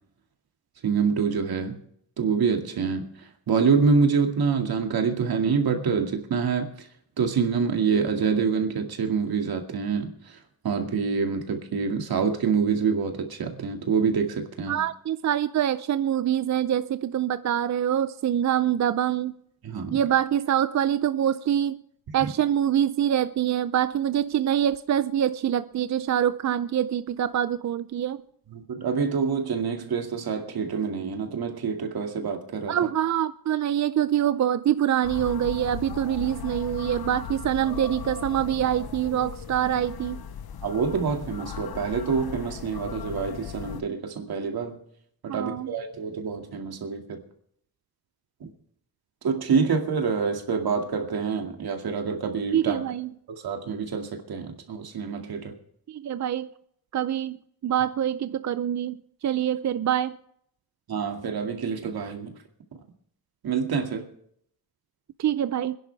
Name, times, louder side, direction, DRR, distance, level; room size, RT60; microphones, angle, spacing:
voice 1, 0.8-1.8 2.2-3.1 3.5-6.7 7.2-10.4 10.6-14.8 19.6-20.0 28.5-32.8 40.6-44.8 45.2-47.2 48.4-48.5 49.2-52.8 53.3-55.5 60.9-62.3 63.4-64.0, right 5 dB, 90° right, 2.2 m, -26 dB
voice 2, 14.7-19.3 19.9-21.8 22.1-28.2 32.7-40.2 45.3-45.7 52.5-53.1 55.9-56.5 56.9-57.4 57.6-60.2 65.2-65.8, right 10 dB, 50° right, 0.5 m, -25 dB
sound 1, 35.0-43.8, left 8 dB, 90° left, 1.0 m, -37 dB
26.0 x 10.5 x 3.4 m
wide cardioid pair, 145°, 36 cm